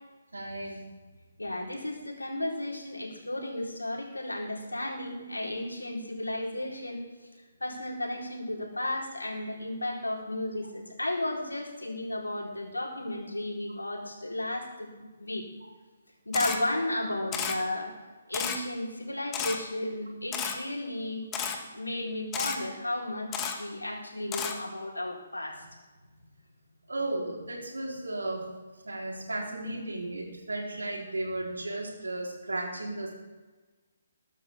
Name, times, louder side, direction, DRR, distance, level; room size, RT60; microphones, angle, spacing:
voice 1, 0.3-0.8 26.9-28.4 28.8-33.1, right 2 dB, 75° right, -2 dB, 4.3 m, -34 dB
voice 2, 1.4-7.0 7.6-14.9 15.2-15.5 16.3-17.9 18.3-21.3 21.7-25.6, left 1 dB, 85° left, -2 dB, 4.4 m, -34 dB
Camera, 16.3-16.6 17.3-17.6 18.3-18.6 19.3-19.6 20.3-20.5 21.3-21.6 22.3-22.6 23.3-23.5 24.3-24.5, left 7 dB, 20° left, 1.5 m, -31 dB
21.5 x 12.0 x 3.8 m, 1.3 s
figure-of-eight pair, 135°, 0 cm